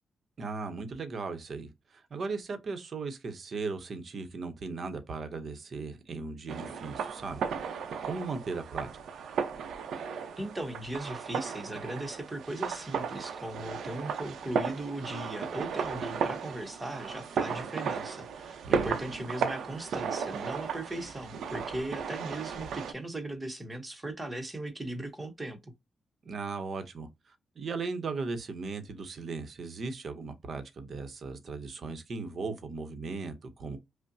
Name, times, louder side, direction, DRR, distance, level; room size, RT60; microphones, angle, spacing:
voice 1, 0.4-7.4 8.0-8.9 18.7-19.0 26.2-33.8, right 4 dB, 40° right, 0.8 m, -37 dB
sound 1, 6.5-22.9, right 6 dB, 75° right, 0.7 m, -35 dB
voice 2, 10.4-25.7, right 1 dB, 15° right, 0.9 m, -38 dB
5.4 x 2.1 x 2.6 m
wide cardioid pair, 165°, 0 cm